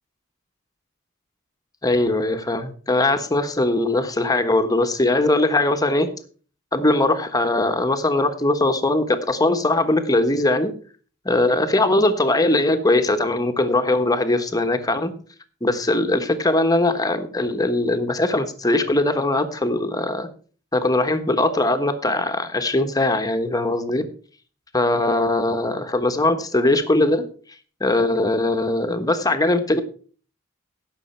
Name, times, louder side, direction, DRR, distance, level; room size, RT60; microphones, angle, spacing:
voice 1, 1.8-6.1 6.7-10.7 11.2-15.1 15.6-20.3 20.7-24.1 24.7-27.2 27.8-29.8, left 2 dB, 20° left, 7 dB, 1.2 m, -20 dB
17.0 x 6.5 x 4.5 m, 0.41 s
head